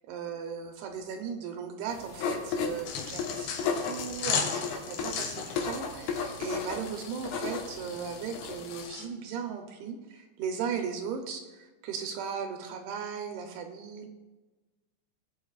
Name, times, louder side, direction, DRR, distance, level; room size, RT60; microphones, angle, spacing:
voice 1, 0.1-14.1, right 6 dB, 75° right, 4 dB, 2.5 m, -37 dB
sound 1, 1.9-8.9, left 5 dB, 90° left, 3.6 m, -35 dB
sound 2, 2.9-9.1, left 6 dB, 75° left, 3.5 m, -37 dB
19.5 x 8.7 x 2.4 m, 1.2 s
omnidirectional pair, 5.1 m